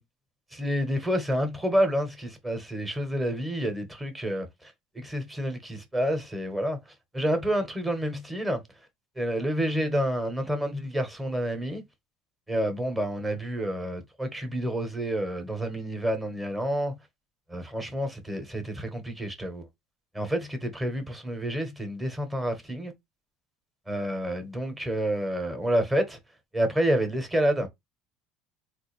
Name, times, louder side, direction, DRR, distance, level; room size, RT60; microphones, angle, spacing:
voice 1, 0.5-8.6 9.2-11.8 12.5-17.0 17.5-19.7 20.1-22.9 23.9-26.2 26.5-27.7, equal, 10° right, 1.1 m, -29 dB
3.5 x 2.6 x 3.3 m
supercardioid pair, 115°, 0 cm